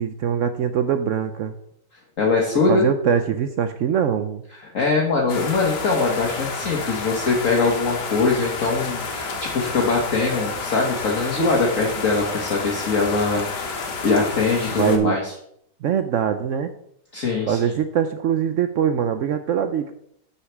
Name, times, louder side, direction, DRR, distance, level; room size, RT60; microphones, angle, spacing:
voice 1, 0.0-1.5 2.7-4.4 14.7-15.2 15.8-16.7 17.5-19.9, right 8 dB, 90° right, 9 dB, 0.6 m, -22 dB
voice 2, 2.2-2.8 4.6-13.7 14.0-15.3 17.1-17.6, left 4 dB, 50° left, -1 dB, 1.5 m, -22 dB
sound 1, 5.3-15.0, left 4 dB, 65° left, 1.8 m, -30 dB
6.4 x 5.7 x 7.2 m, 0.72 s
omnidirectional pair, 2.0 m